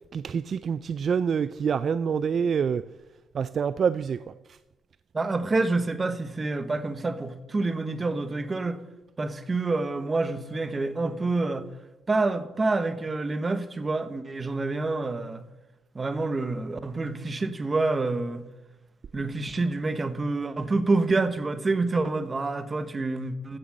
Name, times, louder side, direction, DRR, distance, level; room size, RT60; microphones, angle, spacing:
voice 1, 0.1-2.8 3.3-4.3, right 6 dB, 55° right, 14 dB, 0.4 m, -26 dB
voice 2, 5.1-8.8 9.2-11.7 12.1-15.4 15.9-18.4 19.1-23.6, right 3 dB, 30° right, 11 dB, 1.2 m, -27 dB
15.0 x 7.0 x 6.5 m, 1.0 s
cardioid pair, 90°, 0 cm